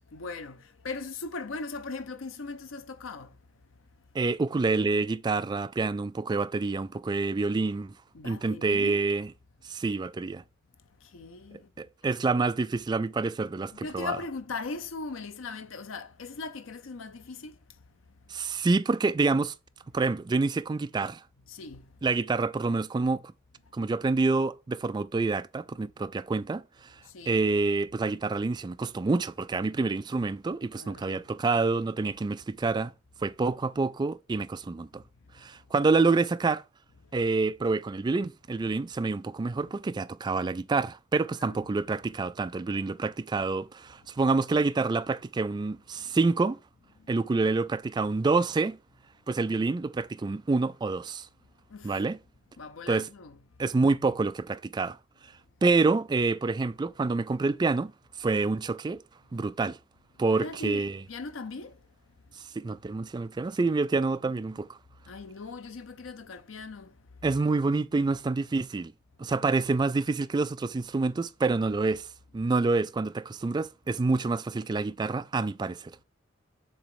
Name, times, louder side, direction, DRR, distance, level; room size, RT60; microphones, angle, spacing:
voice 1, 0.1-3.4 8.1-9.1 11.0-11.7 12.0-12.2 13.7-17.6 21.5-22.0 27.0-27.5 30.7-31.3 35.3-35.5 37.1-37.3 41.4-41.7 46.0-46.2 47.0-47.1 51.7-52.0 52.6-53.4 60.3-61.8 65.1-67.2, left 4 dB, 90° left, 0.6 m, -40 dB
voice 2, 4.1-7.9 8.2-9.3 9.7-10.4 11.8-14.1 18.3-19.5 19.9-21.2 22.0-23.2 23.7-26.6 27.3-32.9 33.2-35.0 35.4-36.6 37.1-46.6 47.1-48.8 49.3-51.3 51.8-52.2 52.9-53.1 53.6-55.0 55.6-57.9 58.2-59.0 59.3-59.8 60.2-61.0 62.6-64.7 67.2-68.9 69.2-72.1 72.3-75.8, right 3 dB, 20° right, 0.3 m, -27 dB
7.1 x 3.0 x 4.8 m
head